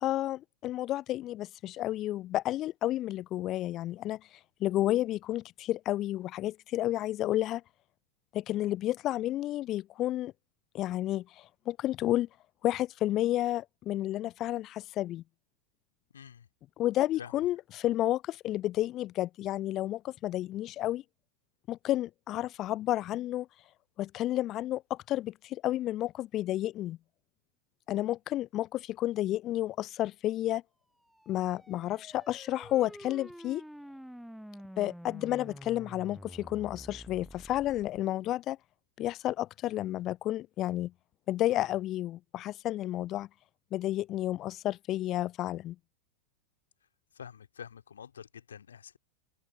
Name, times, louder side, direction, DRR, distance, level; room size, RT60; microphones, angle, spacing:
voice 1, 0.0-4.2 4.6-7.6 8.3-10.3 10.7-12.3 12.6-15.2 16.8-21.0 21.7-23.5 24.0-27.0 27.9-30.6 31.3-33.6 34.8-38.6 39.0-40.9 41.3-43.3 43.7-45.8, left 14 dB, 35° left, 0.3 m, -31 dB
voice 2, 16.1-16.5 17.2-17.5 47.1-49.0, left 7 dB, 70° left, 2.4 m, -47 dB
sound 1, 31.1-38.0, equal, ahead, 0.8 m, -48 dB
open air
figure-of-eight pair, 90°, 0 cm